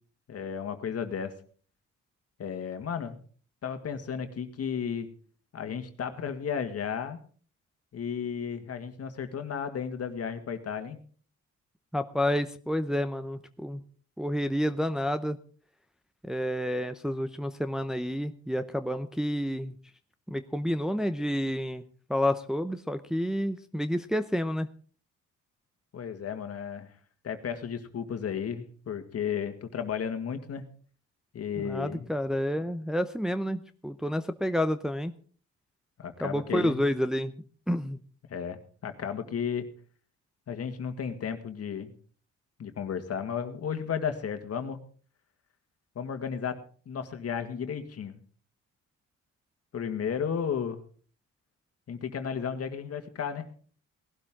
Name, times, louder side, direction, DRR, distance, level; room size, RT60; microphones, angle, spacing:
voice 1, 0.3-1.3 2.4-3.2 3.6-5.1 5.5-7.2 7.9-11.0 25.9-26.9 27.2-30.6 31.3-32.0 36.0-36.8 38.3-39.7 40.5-41.9 42.6-44.8 46.0-46.6 46.9-48.2 49.7-50.8 51.9-53.5, left 7 dB, 55° left, 7 dB, 1.9 m, -33 dB
voice 2, 11.9-13.8 14.2-15.4 16.2-19.8 20.3-21.8 22.1-24.7 31.5-35.1 36.2-37.3 37.7-38.0, equal, ahead, 8 dB, 0.7 m, -29 dB
18.0 x 12.0 x 3.8 m, 0.42 s
cardioid pair, 90°, 30 cm